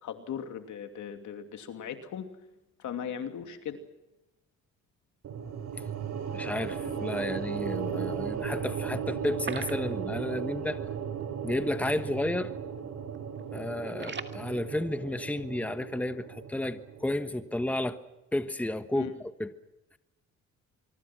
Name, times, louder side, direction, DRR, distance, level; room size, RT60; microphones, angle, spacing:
voice 1, 0.0-2.3 2.8-3.8 18.9-19.1, left 8 dB, 75° left, 2.8 m, -38 dB
sound 1, 5.2-17.5, right 7 dB, 65° right, 3.2 m, -36 dB
voice 2, 6.3-10.8 11.4-12.5 13.5-18.0 18.3-19.1 19.4-19.5, left 1 dB, 5° left, 1.4 m, -32 dB
sound 2, 9.2-10.4 10.7-10.8 11.2-11.3 11.9-12.1 12.4-12.8 13.1-14.4, right 5 dB, 35° right, 2.1 m, -40 dB
25.0 x 23.5 x 6.1 m
cardioid pair, 90°, 30 cm